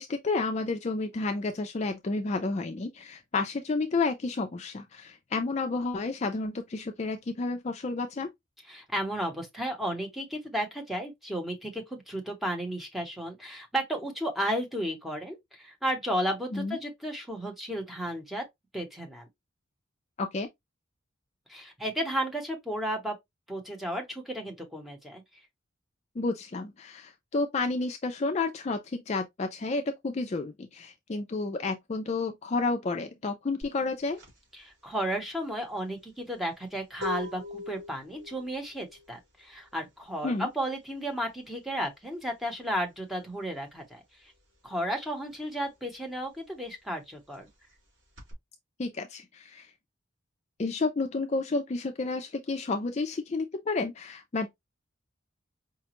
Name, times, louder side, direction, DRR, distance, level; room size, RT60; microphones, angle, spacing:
voice 1, 0.0-8.3 16.5-16.8 20.2-20.5 26.2-34.2 40.2-40.5 48.8-49.7 50.6-54.5, left 3 dB, 35° left, 0.4 m, -31 dB
voice 2, 8.7-18.4 18.7-19.3 21.5-23.1 23.5-25.2 34.6-44.3 44.6-47.5, equal, ahead, 0.9 m, -33 dB
sound 1, 33.6-43.8 44.1-48.3, left 2 dB, 70° right, 2.6 m, -43 dB
4.9 x 2.3 x 2.9 m
head